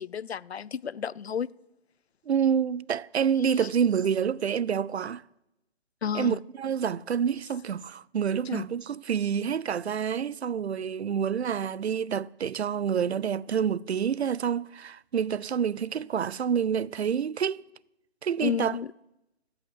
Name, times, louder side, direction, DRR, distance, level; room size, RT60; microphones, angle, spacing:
voice 1, 0.0-1.5 3.6-3.7 6.0-6.4 8.5-8.7 18.4-18.9, left 8 dB, 75° left, 0.5 m, -31 dB
voice 2, 2.3-5.2 6.1-17.6 18.2-18.8, right 7 dB, 80° right, 0.5 m, -28 dB
15.5 x 5.7 x 7.8 m
figure-of-eight pair, 170°, 32 cm